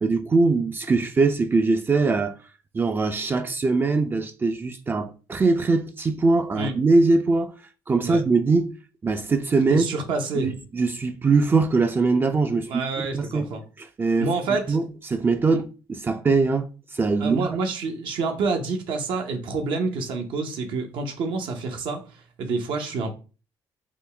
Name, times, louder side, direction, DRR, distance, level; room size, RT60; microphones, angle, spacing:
voice 1, 0.0-2.4 2.7-7.5 7.9-8.7 9.0-9.8 10.3-12.8 13.1-13.5 13.8-14.3 14.7-16.7 16.9-17.6, right 3 dB, 25° right, 0.4 m, -22 dB
voice 2, 9.7-10.5 12.7-13.6 14.2-14.8 15.5-15.6 17.2-22.0 22.4-23.1, right 3 dB, 75° right, 0.8 m, -27 dB
3.7 x 2.3 x 3.3 m
cardioid pair, 100°, 9 cm